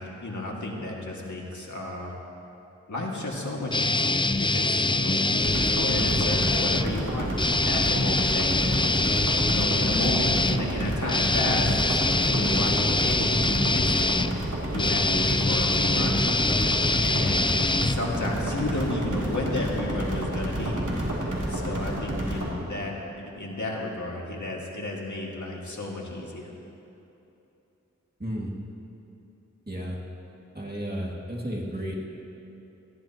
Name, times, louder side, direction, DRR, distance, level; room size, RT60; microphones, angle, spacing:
voice 1, 0.0-2.1 2.9-7.3 7.7-8.9 9.1-14.1 14.7-16.2 17.0-17.5 17.8-20.9 21.5-26.5, left 1 dB, 75° left, -2 dB, 2.1 m, -32 dB
sound 1, 3.7-6.9 7.3-18.5, left 2 dB, 15° left, 0.4 m, -24 dB
sound 2, 5.3-22.5, right 1 dB, 90° right, 3.1 m, -30 dB
voice 2, 28.2-28.5 29.7-30.0 30.5-31.9, equal, 35° right, -3 dB, 2.2 m, -32 dB
20.5 x 15.5 x 3.0 m, 3.0 s
wide cardioid pair, 50°, 30 cm